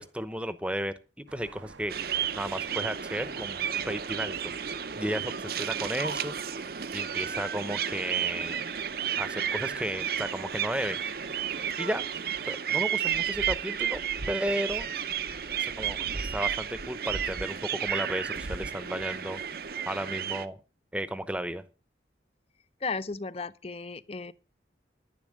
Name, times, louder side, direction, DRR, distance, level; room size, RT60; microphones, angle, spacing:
voice 1, 0.0-4.5 5.0-6.4 6.9-8.6 9.2-11.0 11.8-12.0 12.5-14.0 14.3-14.9 15.6-19.4 19.9-20.6 20.9-21.6, right 1 dB, 5° right, 0.8 m, -34 dB
sound 1, 1.3-12.6, right 5 dB, 90° right, 1.0 m, -49 dB
sound 2, 1.9-20.5, right 8 dB, 55° right, 0.7 m, -32 dB
voice 2, 22.8-24.3, left 4 dB, 30° left, 0.5 m, -35 dB
11.0 x 10.5 x 6.4 m
head